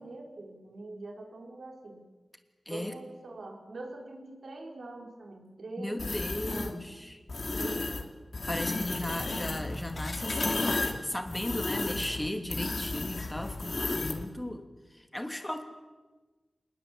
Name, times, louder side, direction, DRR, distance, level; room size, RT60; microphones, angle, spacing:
voice 1, 0.0-2.0 2.7-6.1 6.5-6.9 7.5-8.0, right 2 dB, 70° right, 3 dB, 4.4 m, -43 dB
voice 2, 2.6-3.0 5.8-7.2 8.5-15.6, left 1 dB, 10° left, 5 dB, 2.9 m, -36 dB
sound 1, 6.0-6.7 7.3-8.0 8.3-14.2, left 3 dB, 50° left, 2.9 m, -33 dB
26.5 x 21.0 x 8.6 m, 1.3 s
wide cardioid pair, 95°, 0 cm